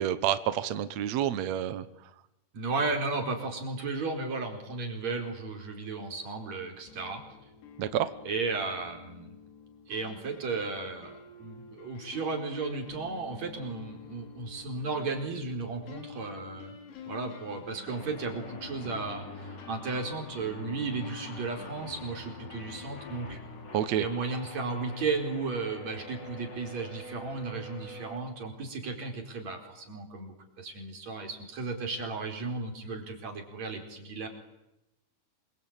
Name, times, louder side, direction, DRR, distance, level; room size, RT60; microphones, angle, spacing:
voice 1, 0.0-1.8 7.8-8.1 23.7-24.0, right 11 dB, 75° right, 12 dB, 1.5 m, -28 dB
voice 2, 2.5-7.2 8.3-9.4 9.9-16.8 17.1-23.4 24.0-34.3, right 3 dB, 40° right, 2 dB, 5.5 m, -34 dB
sound 1, 6.9-23.8, left 5 dB, 85° left, 5.5 m, -49 dB
sound 2, 17.9-28.2, left 2 dB, 30° left, 3.2 m, -46 dB
27.5 x 24.0 x 8.8 m, 0.91 s
omnidirectional pair, 4.7 m